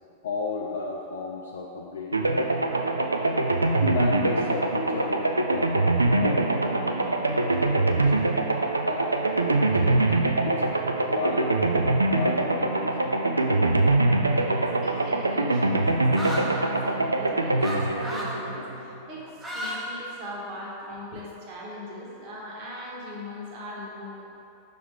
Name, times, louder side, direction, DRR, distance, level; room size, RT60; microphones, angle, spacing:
voice 1, 0.2-2.3 3.3-3.4 3.7-8.3 8.8-10.2 10.4-10.7 11.1-11.5 11.8-13.1 21.1-21.2, left 4 dB, 65° left, -1 dB, 0.4 m, -34 dB
sound 1, 2.1-19.0, right 2 dB, 80° right, 0.3 m, -24 dB
voice 2, 14.1-15.9 16.2-24.2, equal, 45° right, -5 dB, 1.5 m, -40 dB
sound 2, 16.1-16.5 17.6-17.8 18.0-18.3 19.3-19.8 20.1-20.8, equal, 10° right, 1.0 m, -33 dB
6.2 x 3.4 x 4.7 m, 2.7 s
figure-of-eight pair, 90°, 0 cm